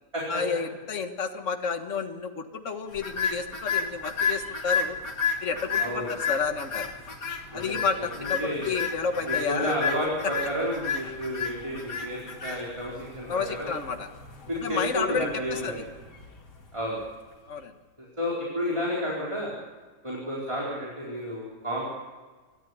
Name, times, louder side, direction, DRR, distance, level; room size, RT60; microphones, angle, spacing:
voice 1, 0.3-5.0 5.4-6.9 7.5-9.8 10.2-10.3 11.0-11.1 13.3-14.1 14.6-15.9 17.5-17.7, left 5 dB, 50° left, 5 dB, 1.9 m, -31 dB
sound 1, 2.9-17.3, left 5 dB, 80° left, 3.0 m, -33 dB
voice 2, 5.8-6.1 7.5-7.9 8.2-8.8 9.2-13.7 14.5-15.8 16.7-17.0 18.0-19.5 20.0-21.8, equal, 15° right, -5 dB, 4.5 m, -31 dB
26.0 x 13.5 x 9.7 m, 1.4 s
omnidirectional pair, 1.8 m